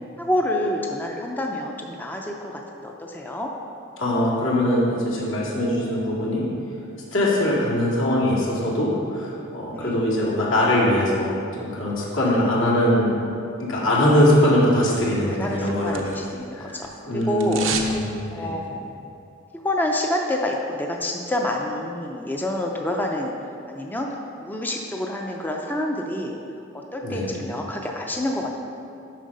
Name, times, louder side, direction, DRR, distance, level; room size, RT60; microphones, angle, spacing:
voice 1, 0.2-3.5 9.7-10.0 12.3-12.4 13.9-14.1 15.3-17.7 18.3-18.9 19.5-23.3 23.7-24.1 24.4-26.4 26.7-28.6, left 1 dB, 10° left, 1 dB, 0.5 m, -28 dB
voice 2, 4.0-6.4 7.1-13.2 13.6-16.1 16.5-16.8 17.0-18.6 27.0-27.5, left 1 dB, 80° left, -6 dB, 2.1 m, -22 dB
sound 1, 15.2-16.4 16.7-18.0 18.3-18.4, right 6 dB, 70° right, 0.7 m, -31 dB
7.4 x 5.6 x 5.3 m, 2.6 s
head